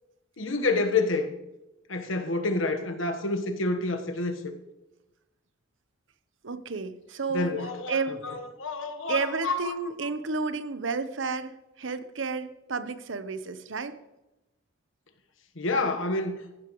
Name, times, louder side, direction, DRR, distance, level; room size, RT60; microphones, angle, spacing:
voice 1, 0.4-1.3 1.9-4.5 7.3-9.7 15.5-16.4, left 3 dB, 90° left, 1.3 m, -28 dB
voice 2, 6.4-7.5 7.9-8.3 9.1-14.0, right 4 dB, 80° right, 0.9 m, -31 dB
14.5 x 12.0 x 3.1 m
head